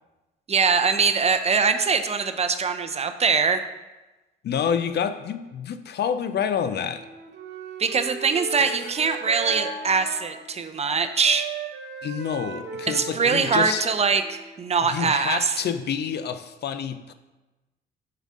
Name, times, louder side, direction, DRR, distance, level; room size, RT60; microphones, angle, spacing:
voice 1, 0.5-3.6 7.8-11.5 12.9-15.5, right 5 dB, 30° right, 8 dB, 0.6 m, -22 dB
voice 2, 4.4-7.1 12.0-13.9 14.8-17.1, left 7 dB, 55° left, 11 dB, 0.5 m, -28 dB
Wind instrument woodwind instrument, 6.9-10.5 10.8-14.7, right 6 dB, 60° right, 0.9 m, -38 dB
Bell, 9.5-11.1, equal, 25° left, 1.5 m, -39 dB
7.2 x 5.6 x 3.7 m, 1.1 s
cardioid pair, 90°, 20 cm